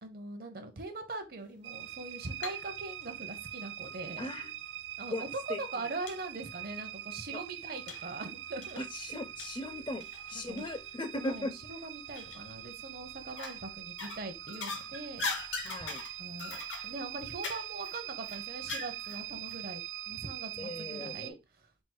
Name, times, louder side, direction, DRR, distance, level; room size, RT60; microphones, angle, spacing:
voice 1, 0.0-4.3 5.0-8.8 10.5-10.6 11.2-15.5 16.2-21.4, right 2 dB, 50° right, 0.7 m, -42 dB
sound 1, 1.6-21.3, right 12 dB, 85° right, 0.3 m, -43 dB
sound 2, 1.9-2.6 3.0-4.0 4.8-4.9 5.3-5.4 6.1-6.2 6.6-6.7 7.9-8.1 8.6-10.9 11.2-11.4 12.1-12.7 13.2-13.6 14.0-19.2 19.5-19.6, left 4 dB, 85° left, 0.9 m, -41 dB
voice 2, 4.2-4.5 5.1-5.2 5.5-5.6 7.3-7.4 8.8-11.6 15.6-16.0 20.6-21.4, left 1 dB, 25° left, 0.4 m, -38 dB
4.5 x 2.0 x 4.4 m
head